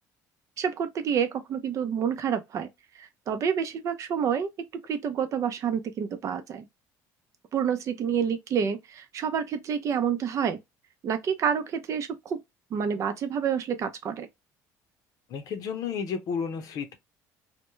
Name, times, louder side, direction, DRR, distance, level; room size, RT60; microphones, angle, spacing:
voice 1, 0.6-2.7 2.9-4.5 4.9-6.7 7.5-10.6 11.0-12.4 12.7-14.3, right 7 dB, 50° right, 0.5 m, -28 dB
voice 2, 15.3-17.0, left 6 dB, 60° left, 0.6 m, -32 dB
2.2 x 2.1 x 3.0 m
cardioid pair, 105°, 7 cm